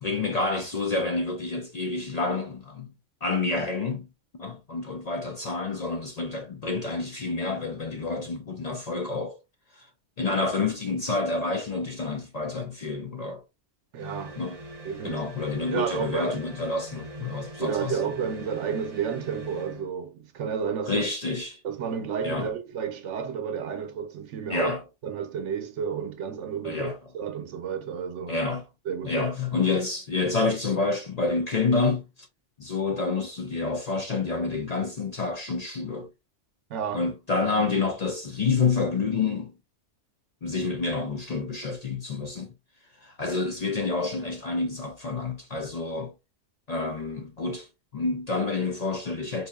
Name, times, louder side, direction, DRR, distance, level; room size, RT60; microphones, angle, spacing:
voice 1, 0.0-2.9 3.2-4.1 4.4-9.4 9.7-9.9 10.2-13.4 14.4-14.6 15.0-17.9 20.9-21.6 22.2-22.5 24.5-24.8 26.6-26.9 28.3-28.6 29.1-32.1 32.6-36.1 36.9-39.5 40.4-42.5 43.0-46.1 46.7-47.7 47.9-49.5, left 3 dB, 50° left, 0.5 m, -28 dB
sound 1, 13.9-19.9, right 1 dB, 35° right, 0.9 m, -42 dB
voice 2, 13.9-14.4 14.8-15.2 15.7-16.4 17.6-21.1 21.6-24.7 25.0-28.4 28.8-29.3 36.7-37.1, right 7 dB, 80° right, 0.9 m, -31 dB
4.2 x 2.6 x 2.3 m
omnidirectional pair, 1.2 m